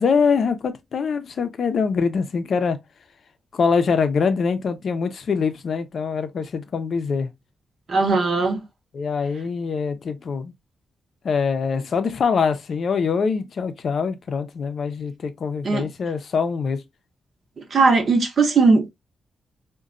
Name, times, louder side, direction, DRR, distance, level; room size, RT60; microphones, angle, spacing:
voice 1, 0.0-2.8 3.5-7.3 8.9-10.5 11.2-16.8, left 5 dB, 60° left, 0.5 m, -23 dB
voice 2, 7.9-8.6 15.6-15.9 17.6-18.9, right 4 dB, 50° right, 0.7 m, -19 dB
4.0 x 2.2 x 2.4 m
wide cardioid pair, 130°, 0 cm